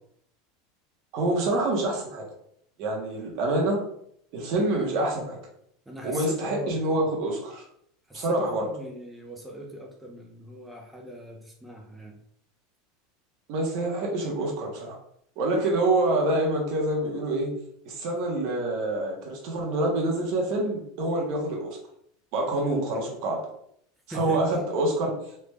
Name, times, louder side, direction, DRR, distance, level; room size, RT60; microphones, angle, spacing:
voice 1, 1.1-2.2 2.8-3.8 4.3-5.4 6.0-7.6 8.1-8.7 13.5-15.0 15.4-17.5 17.8-21.8 22.3-23.4 24.1-25.1, right 2 dB, 45° right, 0 dB, 0.9 m, -26 dB
voice 2, 5.9-6.8 8.1-12.2 24.1-24.4, equal, 5° right, 1 dB, 0.3 m, -40 dB
3.3 x 2.3 x 3.2 m, 0.68 s
supercardioid pair, 175°, 0 cm